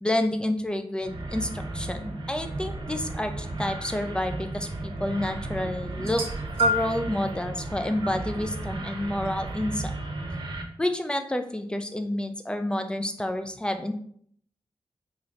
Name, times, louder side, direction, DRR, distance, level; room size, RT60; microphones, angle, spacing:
voice 1, 0.0-6.2 6.6-9.9 10.8-13.9, left 1 dB, 10° left, 7 dB, 0.5 m, -29 dB
sound 1, 1.0-10.6, right 2 dB, 60° right, 0.8 m, -35 dB
sound 2, 6.0-7.1 8.0-8.2 9.3-9.4, equal, 80° right, 1.0 m, -27 dB
5.0 x 2.9 x 2.5 m, 0.62 s
cardioid pair, 65°, 10 cm